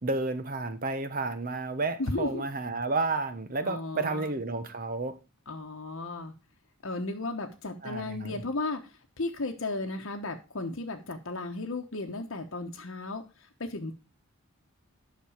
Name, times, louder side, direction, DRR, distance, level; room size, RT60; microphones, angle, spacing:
voice 1, 0.0-5.2 7.8-8.4, right 3 dB, 40° right, 1.0 m, -31 dB
voice 2, 2.0-2.4 3.6-4.3 5.5-6.3 6.8-8.8 9.2-13.2 13.6-14.0, left 2 dB, 60° left, 1.1 m, -34 dB
10.0 x 6.2 x 4.9 m
head